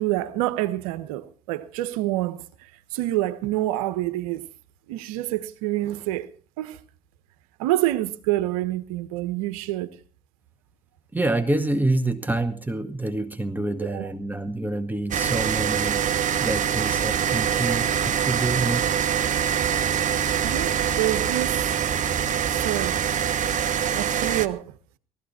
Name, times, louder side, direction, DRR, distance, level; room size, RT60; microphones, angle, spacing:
voice 1, 0.0-4.5 4.9-6.3 6.6-6.8 7.6-9.9 13.8-14.1 20.4-21.6 22.5-23.1 23.9-24.7, right 15 dB, 75° right, 1.3 m, -27 dB
voice 2, 11.1-16.0 16.4-18.8, right 2 dB, 10° right, 1.9 m, -27 dB
sound 1, 15.1-24.5, right 9 dB, 45° right, 1.4 m, -24 dB
18.5 x 14.0 x 4.4 m
hypercardioid pair, 65°, 18 cm